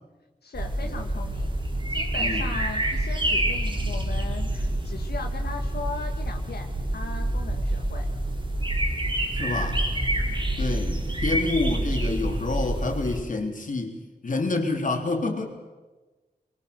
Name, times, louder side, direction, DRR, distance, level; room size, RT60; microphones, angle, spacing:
voice 1, 0.4-1.6 1.9-8.1, left 4 dB, 85° left, 3 dB, 1.7 m, -38 dB
sound 1, 0.5-13.2, right 1 dB, 30° right, 3.6 m, -27 dB
voice 2, 2.2-2.5 9.3-9.8 10.6-14.0 14.2-15.5, left 3 dB, 55° left, 4 dB, 3.4 m, -28 dB
24.5 x 22.0 x 6.8 m, 1.2 s
wide cardioid pair, 125°, 16 cm